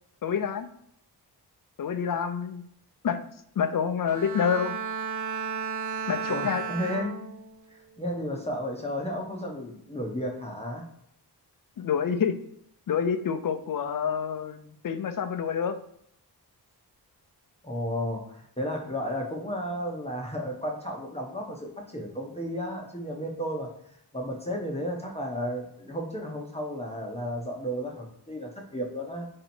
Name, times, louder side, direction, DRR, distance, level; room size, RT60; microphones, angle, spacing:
voice 1, 0.2-0.7 1.8-2.6 3.0-3.2 3.6-4.8 6.1-6.6 11.8-12.4 12.9-15.8, left 7 dB, 55° left, 9 dB, 0.5 m, -27 dB
Bowed string instrument, 4.0-7.6 8.1-8.5, right 6 dB, 50° right, 0.5 m, -34 dB
voice 2, 6.3-7.2 7.7-10.8 17.6-23.7 24.1-29.3, equal, 15° left, -1 dB, 0.8 m, -33 dB
4.2 x 2.8 x 4.2 m, 0.71 s
wide cardioid pair, 125°, 41 cm